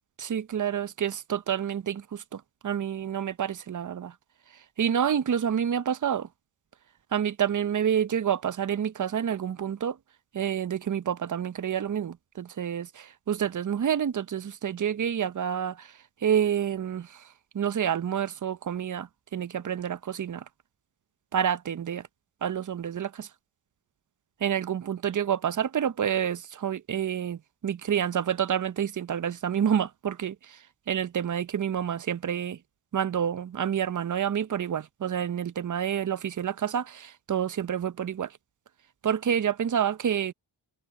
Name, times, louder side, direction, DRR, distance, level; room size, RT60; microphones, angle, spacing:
voice 1, 0.2-4.1 4.5-6.3 7.1-10.0 10.3-17.3 17.5-20.4 21.3-22.1 22.4-23.3 24.4-32.6 32.9-38.4 39.0-40.3, right 9 dB, 40° right, 0.8 m, -28 dB
cardioid pair, 55°, 48 cm